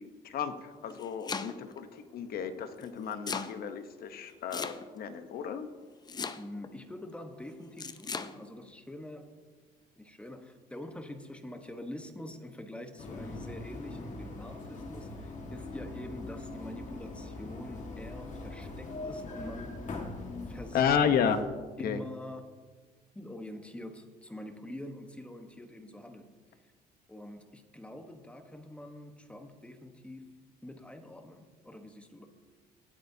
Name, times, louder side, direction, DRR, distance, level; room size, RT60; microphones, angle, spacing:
voice 1, 0.0-5.7 20.7-21.4 21.8-22.0, left 7 dB, 65° left, 9 dB, 1.0 m, -32 dB
Domestic sounds home sounds, 0.7-1.8 2.8-3.5 4.5-5.1 6.1-6.7 7.8-8.3, left 5 dB, 25° left, 0.6 m, -37 dB
voice 2, 6.4-9.3 10.0-19.8 20.5-20.9 21.8-22.6 23.1-26.7 27.1-32.3, left 1 dB, 5° left, 6 dB, 1.1 m, -45 dB
sound 1, 13.0-21.4, left 2 dB, 45° left, 1.7 m, -42 dB
18.5 x 8.4 x 2.8 m, 1.4 s
cardioid pair, 110°, 17 cm